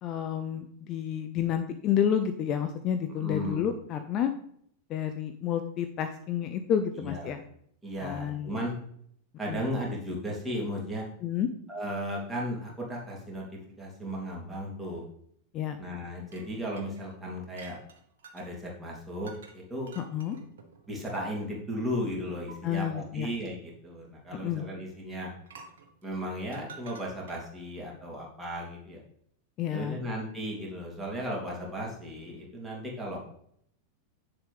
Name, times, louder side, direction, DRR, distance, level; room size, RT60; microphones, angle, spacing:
voice 1, 0.0-4.3 4.9-7.4 8.0-8.6 9.5-9.6 11.2-11.5 15.5-15.8 20.0-20.4 22.6-23.3 24.3-24.6 29.6-30.0, left 9 dB, 35° left, 8 dB, 0.6 m, -30 dB
voice 2, 3.2-3.7 7.0-7.4 7.8-8.7 9.4-11.1 11.7-13.5 13.8-15.1 15.8-17.8 18.3-19.9 20.9-25.3 26.0-29.0 29.7-33.3, equal, 10° right, -3 dB, 2.8 m, -35 dB
sound 1, 16.3-18.5 19.2-19.6 19.9-21.6 22.5-22.6 25.4-27.6, right 5 dB, 60° right, 1.1 m, -51 dB
8.0 x 7.1 x 3.5 m, 0.67 s
figure-of-eight pair, 90°, 0 cm